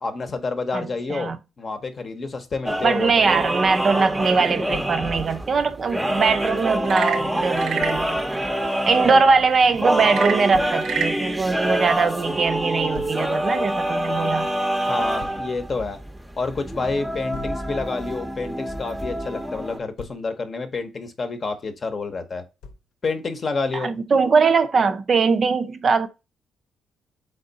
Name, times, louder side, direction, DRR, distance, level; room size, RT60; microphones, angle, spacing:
voice 1, 0.0-3.3 9.0-9.2 14.8-16.0 16.4-22.4 23.0-23.9, left 3 dB, 40° left, 0.8 m, -29 dB
voice 2, 0.7-1.4 2.8-8.2 8.9-14.5 23.7-26.1, right 4 dB, 45° right, 0.5 m, -21 dB
sound 1, 2.7-19.8, equal, 10° right, 0.7 m, -26 dB
Thump thud, 4.7-5.0 7.8-8.0 10.5-10.8 12.9-13.3 15.2-15.5 17.3-17.7 19.7-20.3 22.6-22.9, left 4 dB, 85° left, 0.6 m, -40 dB
Frog / Percussion / Wood, 6.8-8.1 10.0-11.2, right 7 dB, 80° right, 0.6 m, -28 dB
3.6 x 3.5 x 3.9 m
cardioid pair, 90°, 0 cm